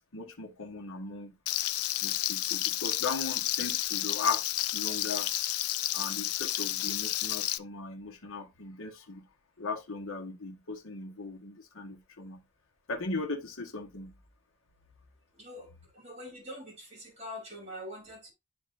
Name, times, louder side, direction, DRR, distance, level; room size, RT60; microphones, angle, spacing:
voice 1, 0.1-1.3 2.0-5.3 5.9-9.2 9.6-12.4 12.9-14.2, left 3 dB, 65° left, 1.3 m, -37 dB
Frying (food), 1.5-7.6, left 14 dB, 80° left, 0.4 m, -31 dB
voice 2, 15.4-18.3, left 1 dB, 30° right, 3.3 m, -44 dB
11.5 x 3.8 x 2.5 m
head